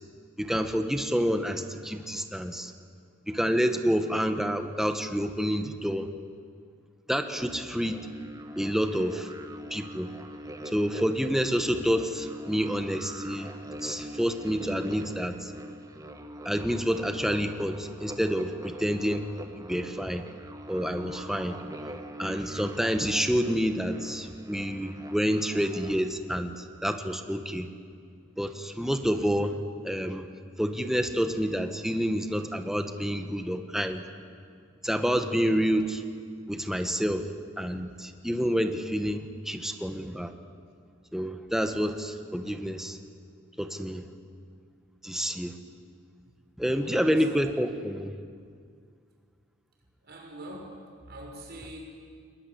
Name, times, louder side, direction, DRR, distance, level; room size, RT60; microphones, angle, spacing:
voice 1, 0.4-2.7 3.3-6.1 7.1-8.0 8.6-9.3 9.7-10.1 10.6-13.5 13.8-15.5 16.4-19.3 19.5-20.2 20.7-21.6 22.2-27.7 28.4-29.6 29.8-30.3 30.6-34.0 34.8-36.0 36.5-37.3 37.6-40.3 41.1-43.0 43.6-44.0 45.0-45.5 46.6-48.1, equal, ahead, 7 dB, 1.3 m, -28 dB
sound 1, 7.4-26.1, equal, 20° right, 1.6 m, -43 dB
voice 2, 46.8-47.5 50.0-50.7 51.0-51.8, right 1 dB, 55° right, 0 dB, 6.3 m, -43 dB
22.0 x 21.0 x 9.8 m, 2.2 s
head